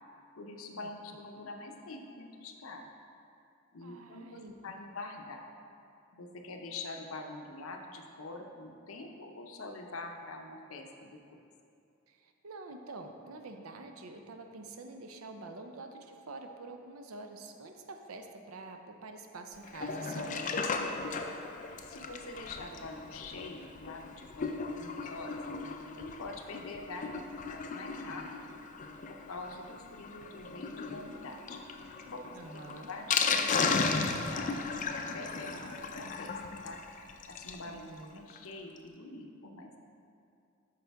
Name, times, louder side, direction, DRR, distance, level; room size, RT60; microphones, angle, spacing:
voice 1, 0.4-2.9 3.7-5.5 6.1-11.2 21.9-25.4 26.0-28.5 29.1-31.6 32.1-36.3 36.6-36.8 37.3-39.8, left 2 dB, 80° left, 3 dB, 0.7 m, -45 dB
voice 2, 3.8-4.5 12.1-20.4 32.3-32.9 35.5-35.8 37.6-38.2, right 3 dB, 90° right, 5 dB, 0.6 m, -47 dB
Sink (filling or washing), 19.6-37.7 38.0-38.1 38.3-38.4 38.8-38.9, left 4 dB, 40° left, 0.4 m, -36 dB
8.3 x 6.5 x 3.5 m, 2.5 s
head